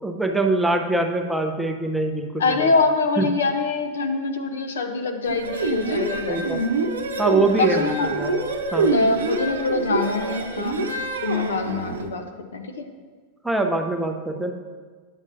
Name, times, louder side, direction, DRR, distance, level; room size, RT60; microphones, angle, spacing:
voice 1, 0.0-2.7 3.2-3.3 6.3-6.6 7.2-8.3 8.7-8.9 13.4-14.5, right 2 dB, 5° right, 4 dB, 0.6 m, -23 dB
voice 2, 2.4-6.6 7.6-8.2 8.9-10.9 11.2-12.9, left 3 dB, 65° left, 8 dB, 0.6 m, -24 dB
sound 1, 5.3-12.1, right 3 dB, 65° right, 0.7 m, -26 dB
10.5 x 7.2 x 2.6 m, 1.5 s
figure-of-eight pair, 90°, 0 cm